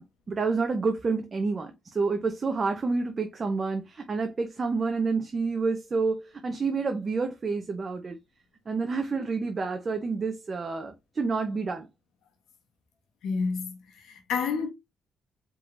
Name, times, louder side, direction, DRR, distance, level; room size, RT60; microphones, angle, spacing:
voice 1, 0.0-8.2 8.7-11.9, right 4 dB, 35° right, 0.7 m, -29 dB
voice 2, 13.2-14.7, left 5 dB, 75° left, 1.3 m, -30 dB
4.7 x 3.7 x 2.5 m
cardioid pair, 90°, 0 cm